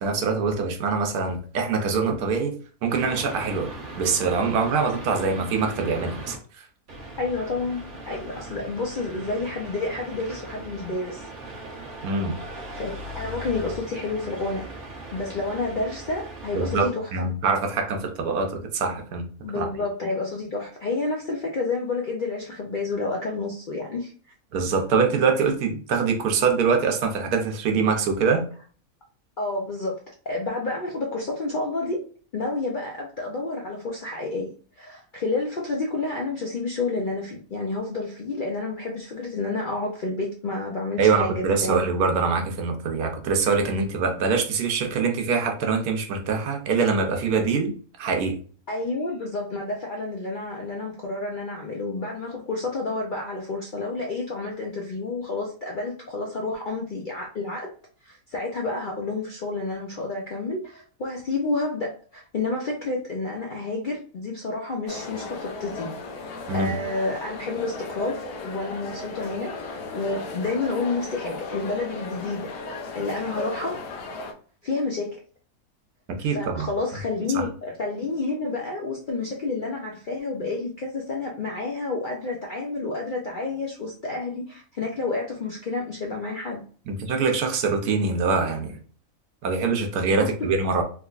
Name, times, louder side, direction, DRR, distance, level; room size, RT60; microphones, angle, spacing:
voice 1, 0.0-2.5 2.8-3.7 4.0-6.6 12.0-12.4 16.5-19.3 19.6-19.7 24.5-28.4 41.0-47.7 48.0-48.4 66.5-66.7 76.2-76.7 77.3-77.4 86.9-88.8 89.4-90.8, right 5 dB, 85° right, 4 dB, 1.2 m, -24 dB
sound 1, 2.9-6.4 6.9-16.9, right 1 dB, 55° right, 1.2 m, -39 dB
voice 2, 7.2-11.2 12.8-14.6 15.1-17.1 19.4-24.1 29.4-32.0 32.3-34.5 34.8-41.9 48.7-57.7 58.0-65.9 66.2-66.3 66.5-72.5 72.9-73.8 74.6-75.2 76.3-86.6 90.1-90.5, left 3 dB, 65° left, -1 dB, 0.5 m, -30 dB
sound 2, 64.9-74.3, left 3 dB, 85° left, 1.2 m, -36 dB
3.5 x 3.0 x 2.4 m, 0.41 s
omnidirectional pair, 1.6 m